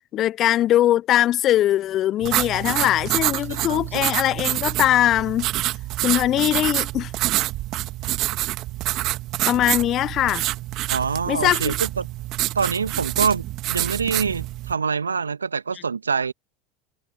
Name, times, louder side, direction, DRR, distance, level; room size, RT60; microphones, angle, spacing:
voice 1, 0.1-5.5 6.0-7.1 9.5-10.4 11.3-11.7, left 13 dB, 40° left, 0.4 m, -21 dB
sound 1, 2.2-14.7, right 17 dB, 45° right, 1.5 m, -27 dB
voice 2, 3.5-4.1 10.9-12.1 12.5-16.3, right 5 dB, 80° right, 1.5 m, -25 dB
figure-of-eight pair, 75°, 0 cm